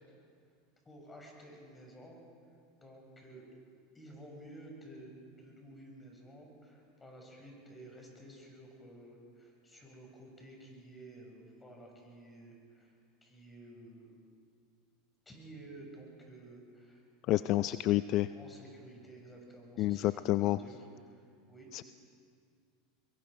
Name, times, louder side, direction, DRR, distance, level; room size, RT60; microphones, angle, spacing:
voice 1, 0.8-2.2 2.8-3.4 3.9-12.9 13.2-14.2 15.2-17.1 17.3-17.7 18.3-21.8, right 1 dB, 15° left, 0 dB, 6.5 m, -52 dB
voice 2, 17.3-18.3 19.8-20.6 21.7-21.8, left 16 dB, 50° left, 14 dB, 0.4 m, -29 dB
23.0 x 22.5 x 5.1 m, 2.3 s
hypercardioid pair, 90°, 0 cm